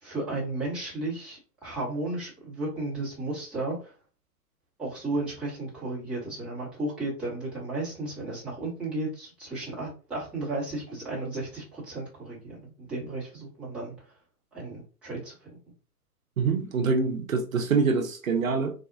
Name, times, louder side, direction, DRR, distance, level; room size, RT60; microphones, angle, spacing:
voice 1, 0.0-3.9 4.8-13.9 14.5-15.6, right 2 dB, ahead, 0.8 m, -34 dB
voice 2, 16.4-18.7, right 4 dB, 55° right, 0.6 m, -25 dB
4.0 x 2.1 x 2.6 m
figure-of-eight pair, 125°, 49 cm